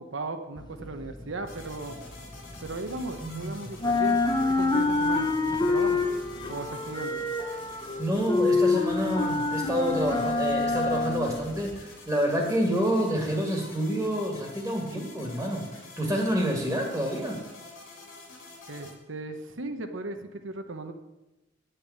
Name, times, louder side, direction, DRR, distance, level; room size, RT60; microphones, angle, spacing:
voice 1, 0.0-2.0 2.6-5.3 5.6-6.0 6.5-7.2 18.7-20.9, right 2 dB, 75° right, 6 dB, 1.0 m, -37 dB
sound 1, 0.6-3.4 3.7-11.9, left 3 dB, 20° left, 0.8 m, -27 dB
sound 2, 1.4-18.9, left 3 dB, 90° left, 3.2 m, -48 dB
voice 2, 3.2-3.5 8.0-17.4, equal, 10° right, 0 dB, 2.0 m, -28 dB
9.7 x 6.8 x 8.6 m, 1.0 s
head